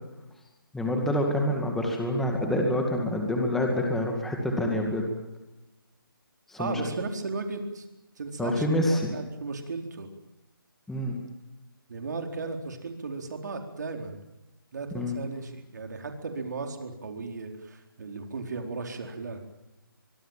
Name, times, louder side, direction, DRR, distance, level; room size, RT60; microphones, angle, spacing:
voice 1, 0.7-5.1 6.5-6.8 8.4-9.1 10.9-11.2 14.9-15.2, left 1 dB, ahead, 1 dB, 2.2 m, -27 dB
voice 2, 6.6-7.9 8.2-10.1 11.9-14.2 14.7-19.4, right 3 dB, 50° right, 4 dB, 4.4 m, -35 dB
24.5 x 22.5 x 7.4 m, 0.99 s
hypercardioid pair, 165°, 12 cm